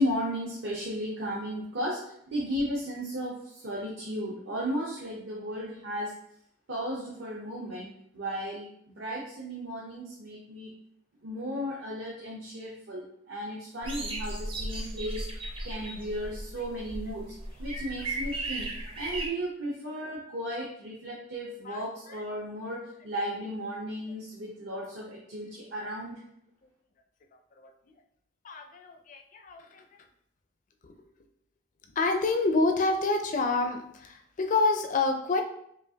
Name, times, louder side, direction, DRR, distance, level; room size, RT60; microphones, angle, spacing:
voice 1, 0.0-6.1 6.7-10.7 11.2-15.2 15.6-17.3 17.6-18.7 19.0-26.2, equal, 60° right, -4 dB, 0.7 m, -35 dB
sound 1, 13.8-19.3, right 1 dB, 25° right, 0.6 m, -36 dB
voice 2, 21.6-22.2 27.6-27.7 28.4-29.8 30.8-30.9 31.9-35.4, left 3 dB, 40° left, 5 dB, 0.4 m, -28 dB
5.0 x 2.4 x 2.7 m, 0.71 s
head